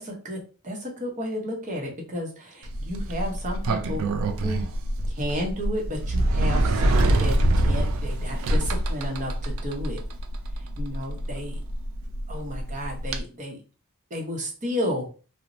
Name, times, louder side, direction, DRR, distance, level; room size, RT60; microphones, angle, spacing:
voice 1, 0.0-4.7 5.1-10.0 10.5-11.6 12.3-13.6 14.1-15.1, equal, 35° right, 0 dB, 0.7 m, -32 dB
Sliding door, 2.6-13.2, right 1 dB, 60° right, 0.3 m, -25 dB
2.9 x 2.0 x 2.5 m, 0.36 s
head